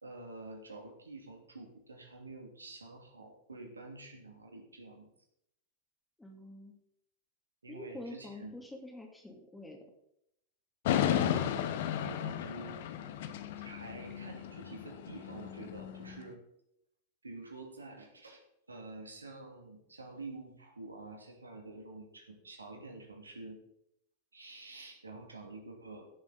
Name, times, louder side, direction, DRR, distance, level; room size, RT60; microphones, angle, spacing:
voice 1, 0.0-5.1 7.6-8.6 11.9-12.9 13.6-16.4 17.2-23.6 24.3-26.1, right 2 dB, 85° right, 3 dB, 2.5 m, -48 dB
voice 2, 6.2-6.8 7.7-9.8, left 1 dB, 5° left, 2 dB, 2.9 m, -46 dB
sound 1, 10.9-16.2, left 10 dB, 60° left, 1.1 m, -34 dB
16.0 x 7.3 x 4.1 m, 0.78 s
figure-of-eight pair, 90°, 0 cm